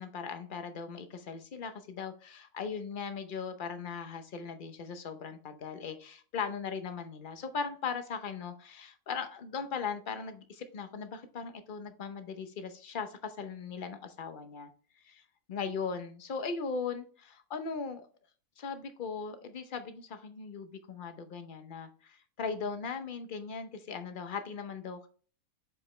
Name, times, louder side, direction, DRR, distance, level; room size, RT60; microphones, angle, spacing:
voice 1, 0.0-14.7 15.0-15.2 15.5-18.1 18.6-25.1, left 5 dB, 45° left, 0.9 m, -39 dB
7.4 x 5.0 x 3.2 m
omnidirectional pair, 1.5 m